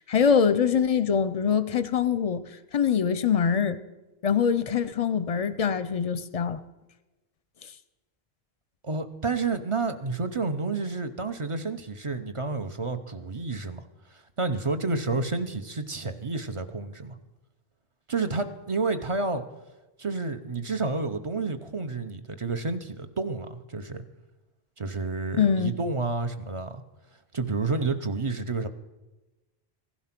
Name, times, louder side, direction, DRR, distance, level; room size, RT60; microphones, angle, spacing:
voice 1, 0.0-2.4 2.7-3.8 4.2-6.6 25.3-25.7, left 7 dB, 45° left, 0.6 m, -23 dB
voice 2, 8.8-13.8 14.1-17.2 18.1-19.4 20.0-24.0 24.8-26.8 27.3-28.7, right 3 dB, 35° right, 0.7 m, -30 dB
15.5 x 11.5 x 5.9 m
omnidirectional pair, 1.0 m